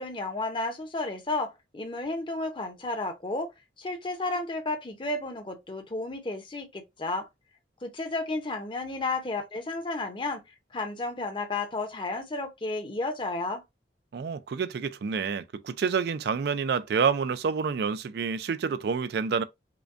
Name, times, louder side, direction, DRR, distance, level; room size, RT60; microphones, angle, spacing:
voice 1, 0.0-3.5 3.8-7.3 7.8-10.4 10.7-13.6, left 2 dB, 30° left, 0.7 m, -32 dB
voice 2, 14.1-19.4, right 6 dB, 65° right, 0.4 m, -28 dB
5.0 x 2.2 x 2.5 m
head